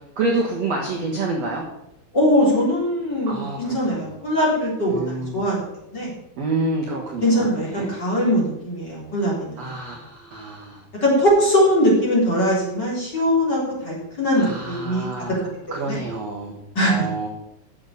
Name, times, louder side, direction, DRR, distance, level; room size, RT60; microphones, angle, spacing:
voice 1, 0.2-1.6 3.3-4.0 4.9-5.4 6.4-7.9 9.6-10.8 14.3-15.3 15.7-16.6 16.8-17.3, right 2 dB, 55° right, -1 dB, 2.0 m, -28 dB
voice 2, 2.1-5.6 5.9-6.1 7.2-9.7 11.0-15.2 15.9-16.0 16.7-17.0, equal, 25° left, -5 dB, 3.9 m, -21 dB
8.9 x 7.1 x 8.3 m, 0.83 s
omnidirectional pair, 4.8 m